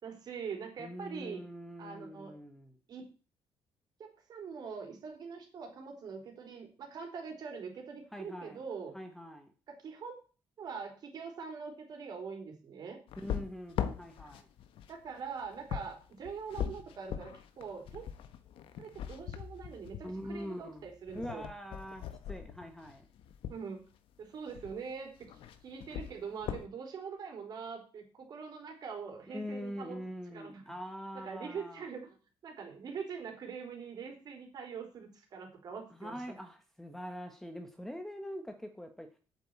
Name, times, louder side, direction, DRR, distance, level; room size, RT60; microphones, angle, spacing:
voice 1, 0.0-1.4 1.8-2.3 2.9-3.1 4.0-8.9 9.7-10.2 10.6-13.0 14.9-18.0 18.8-21.5 23.5-23.8 24.2-25.1 25.6-30.0 30.3-30.6 31.1-32.2 32.4-36.3, right 6 dB, 50° right, 2 dB, 4.1 m, -43 dB
voice 2, 0.8-2.7 8.1-8.6 8.9-9.5 13.2-14.5 20.0-20.8 21.1-23.0 29.3-31.8 36.0-39.1, equal, 5° left, 6 dB, 1.2 m, -43 dB
sound 1, 13.1-23.6 24.5-24.9 25.2-26.7, left 9 dB, 75° left, 1.4 m, -41 dB
8.8 x 7.6 x 8.6 m, 0.37 s
cardioid pair, 160°, 9 cm